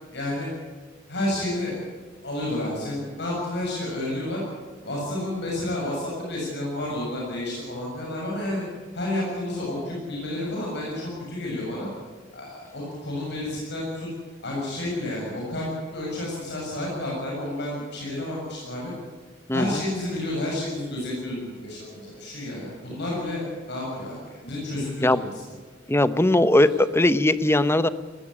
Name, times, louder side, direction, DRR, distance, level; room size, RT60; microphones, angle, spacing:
voice 1, 0.1-0.5 1.1-1.8 2.2-4.4 4.8-8.6 8.9-11.9 12.3-14.1 14.4-18.9 19.5-25.4 26.6-26.7, left 1 dB, 60° left, -3 dB, 7.3 m, -30 dB
voice 2, 19.5-19.8 25.0-25.2 25.9-27.9, left 1 dB, 15° left, 13 dB, 0.9 m, -19 dB
19.5 x 16.5 x 10.0 m, 1.4 s
head